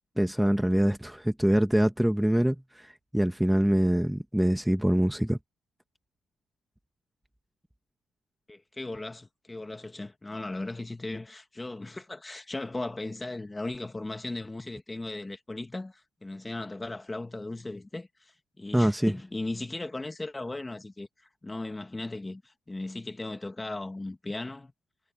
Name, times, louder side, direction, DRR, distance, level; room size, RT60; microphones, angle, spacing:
voice 1, 0.2-5.4 18.7-19.1, equal, 5° right, 1.4 m, -24 dB
voice 2, 8.5-21.1 21.4-24.7, left 2 dB, 15° left, 1.8 m, -37 dB
cardioid pair, 90°, 0 cm